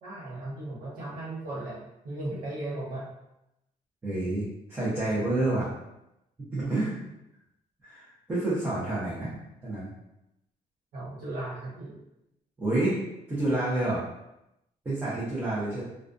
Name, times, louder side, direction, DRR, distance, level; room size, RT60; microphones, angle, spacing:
voice 1, 0.0-1.8 2.0-3.1 6.6-6.8 10.9-12.0, right 1 dB, 80° right, -6 dB, 1.1 m, -36 dB
voice 2, 4.0-5.7 6.5-6.9 7.8-9.3 9.6-9.9 12.6-13.0 13.3-14.0 14.8-15.8, right 2 dB, 15° right, -10 dB, 0.6 m, -28 dB
2.3 x 2.2 x 2.4 m, 0.87 s
cardioid pair, 160°, 14 cm